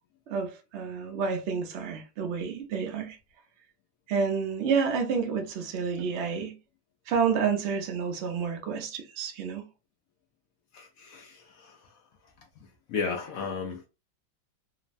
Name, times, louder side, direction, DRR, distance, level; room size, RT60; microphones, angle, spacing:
voice 1, 0.3-3.2 4.1-6.6 7.1-9.6, right 6 dB, 70° right, 0.6 m, -29 dB
voice 2, 10.7-11.8 12.9-13.8, left 5 dB, 70° left, 0.8 m, -34 dB
3.1 x 2.0 x 2.5 m
omnidirectional pair, 1.9 m